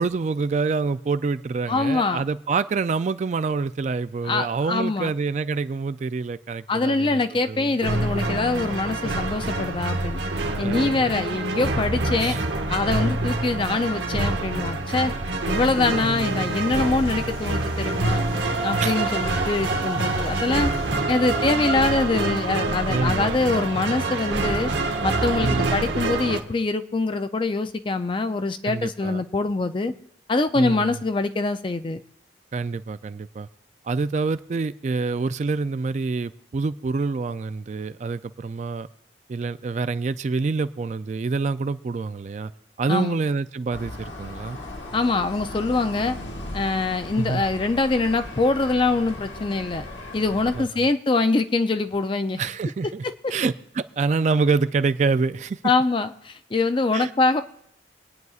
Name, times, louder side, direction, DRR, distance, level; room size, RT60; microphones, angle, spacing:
voice 1, 0.0-7.8 10.6-11.1 12.2-12.4 16.0-16.5 18.8-19.0 21.0-21.4 22.9-23.4 25.4-25.8 28.6-29.2 30.6-31.0 32.5-33.5 33.8-38.9 39.3-42.5 42.8-44.6 47.2-47.4 50.5-50.9 52.4-53.0 53.3-55.6 56.9-57.1, right 4 dB, 40° right, 12 dB, 0.3 m, -26 dB
voice 2, 1.7-2.2 4.2-5.1 6.7-10.2 10.6-12.4 12.7-15.1 15.5-18.3 18.6-20.7 21.1-24.7 25.0-29.9 30.3-32.0 42.9-43.2 44.9-46.2 46.5-49.9 50.1-52.4 55.6-57.4, left 3 dB, 25° left, 10 dB, 0.4 m, -24 dB
sound 1, 7.8-26.4, right 2 dB, 80° right, 1.0 m, -26 dB
sound 2, 15.5-21.0, left 1 dB, 60° left, 2.6 m, -40 dB
sound 3, 43.7-50.6, left 1 dB, 85° left, 1.5 m, -37 dB
26.0 x 9.4 x 2.4 m, 0.75 s
head